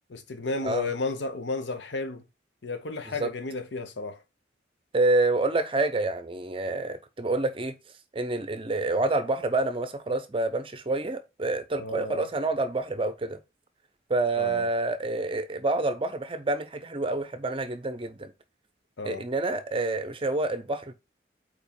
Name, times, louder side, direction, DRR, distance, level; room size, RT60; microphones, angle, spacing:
voice 1, 0.1-2.2 2.6-4.2 11.8-12.3 14.4-14.7 19.0-19.2, left 3 dB, 85° left, 1.0 m, -33 dB
voice 2, 4.9-7.7 8.1-13.4 14.1-18.3 19.0-20.9, right 2 dB, 30° right, 0.7 m, -28 dB
4.9 x 4.4 x 5.2 m
head